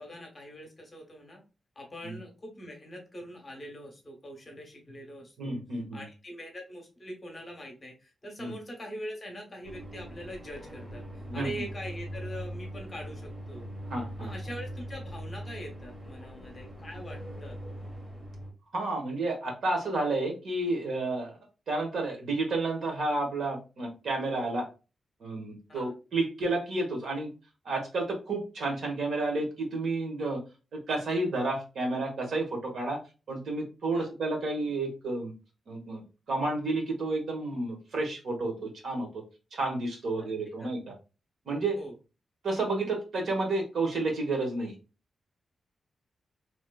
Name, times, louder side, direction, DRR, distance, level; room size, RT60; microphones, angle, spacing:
voice 1, 0.0-1.4 1.7-5.5 5.9-13.7 14.2-17.6 25.7-25.9 33.9-34.1 40.2-40.3 40.6-40.7 41.7-41.9, equal, 25° left, 1 dB, 1.0 m, -43 dB
voice 2, 5.4-6.0 8.4-8.5 11.3-11.5 13.9-14.3 18.7-21.4 21.7-24.7 25.2-27.3 27.6-30.4 30.7-33.0 33.3-35.3 35.7-36.0 36.3-39.2 39.5-40.9 41.5-41.8 42.4-44.7, right 2 dB, 75° right, 0 dB, 1.1 m, -31 dB
sound 1, 9.6-18.5, equal, 35° right, 1.2 m, -41 dB
3.3 x 2.9 x 2.2 m, 0.32 s
wide cardioid pair, 160°, 0 cm